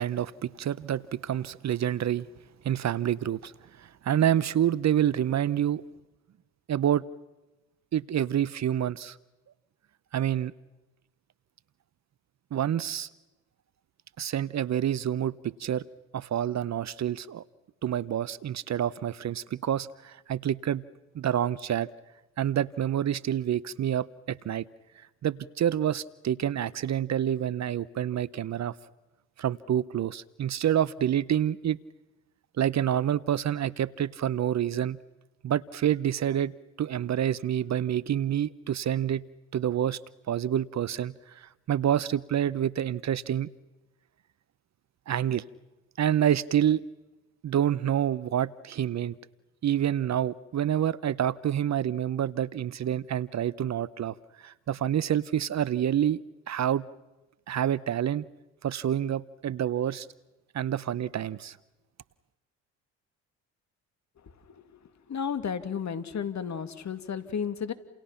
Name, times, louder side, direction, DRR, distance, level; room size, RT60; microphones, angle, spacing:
voice 1, 0.0-2.3 2.6-3.5 3.8-5.8 6.7-7.0 7.9-9.2 10.1-10.5 12.5-13.1 14.2-15.8 16.1-17.4 17.8-20.8 21.1-21.9 22.4-24.6 25.2-28.7 29.4-31.8 32.6-35.0 35.4-36.5 36.8-39.2 39.5-40.0 40.3-43.5 45.1-45.4 46.0-46.8 47.4-49.1 49.6-56.2 56.5-56.8 57.5-58.2 58.6-60.1 60.5-61.6, right 10 dB, 45° right, 19 dB, 0.9 m, -27 dB
voice 2, 64.2-64.8 65.1-67.7, left 7 dB, 45° left, 10 dB, 2.5 m, -33 dB
30.0 x 28.5 x 5.9 m, 1.1 s
hypercardioid pair, 60°, 38 cm